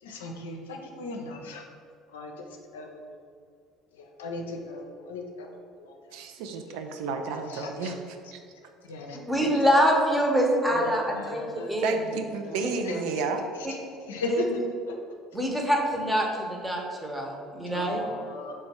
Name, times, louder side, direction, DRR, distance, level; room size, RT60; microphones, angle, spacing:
voice 1, 0.0-1.6 2.1-2.5 2.7-3.2 3.9-6.2 6.7-6.8 7.4-7.9 8.2-8.3 8.8-9.8 10.6-11.7 12.4-13.1 13.6-13.8 14.1-14.5 14.9-15.0 15.5-15.7 17.7-18.5, left 3 dB, 80° left, 2 dB, 0.4 m, -38 dB
voice 2, 6.1-7.9 8.3-8.4 11.8-13.4, right 5 dB, 70° right, 5 dB, 0.3 m, -31 dB
voice 3, 9.3-11.9 12.6-12.7 14.3-14.5 15.3-18.0, equal, 10° right, 0 dB, 0.9 m, -25 dB
3.4 x 3.1 x 4.2 m, 2.3 s
hypercardioid pair, 60°, 0 cm